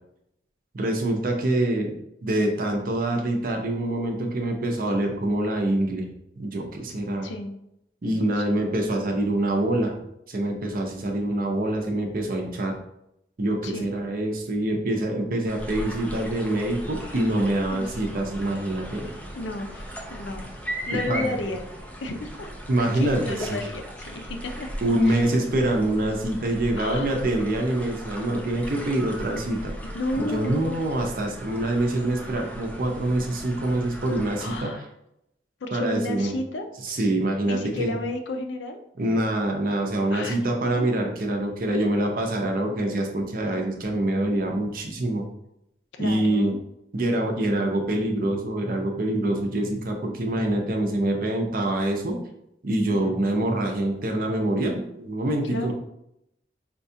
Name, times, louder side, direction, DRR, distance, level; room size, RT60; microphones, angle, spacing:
voice 1, 0.7-2.0 2.2-7.3 8.0-10.0 10.3-12.8 13.4-19.1 20.9-21.3 22.7-23.6 24.8-29.7 30.2-34.9 35.7-36.3 36.8-37.9 39.0-45.2 46.0-46.5 46.9-52.2 52.6-55.7, right 1 dB, 50° right, 2 dB, 0.6 m, -25 dB
voice 2, 7.2-7.5 8.4-8.7 13.6-13.9 17.7-18.0 19.0-20.5 20.9-21.6 22.0-22.5 22.8-24.7 25.1-25.2 26.8-27.2 29.8-30.9 34.4-34.8 35.6-36.7 37.4-38.8 40.1-40.4 40.6-40.9 45.9-46.6 53.0-53.2 55.5-55.7, left 2 dB, 80° left, 6 dB, 0.5 m, -32 dB
sound 1, 15.4-34.6, equal, 10° left, 0.4 m, -38 dB
4.4 x 2.3 x 2.7 m, 0.79 s
head